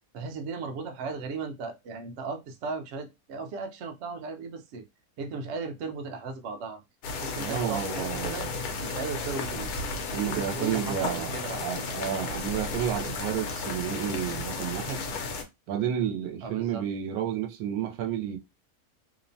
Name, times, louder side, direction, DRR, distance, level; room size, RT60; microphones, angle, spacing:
voice 1, 0.1-4.8 5.2-6.8 7.2-8.5 8.8-9.7 10.2-11.9 16.4-16.8, right 4 dB, 65° right, 0.7 m, -36 dB
sound 1, 7.0-15.4, left 4 dB, 85° left, 1.1 m, -34 dB
voice 2, 7.4-8.5 10.1-15.0 15.7-18.4, right 9 dB, 80° right, 1.1 m, -31 dB
2.8 x 2.1 x 2.6 m
omnidirectional pair, 1.6 m